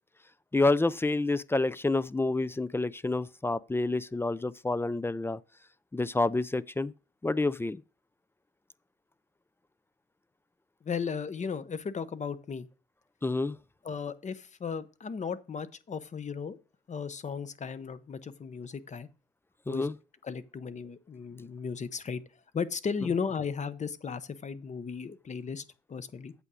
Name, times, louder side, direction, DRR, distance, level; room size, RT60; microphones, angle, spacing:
voice 1, 0.5-5.4 5.9-6.9 7.2-7.8 13.2-13.6 19.7-19.9, left 2 dB, 10° left, 0.3 m, -28 dB
voice 2, 10.8-12.7 13.8-16.6 16.9-19.1 19.7-19.9 20.2-22.2 22.5-25.6 25.9-26.3, left 6 dB, 35° left, 0.8 m, -35 dB
8.2 x 5.0 x 6.1 m
cardioid pair, 90°, 20 cm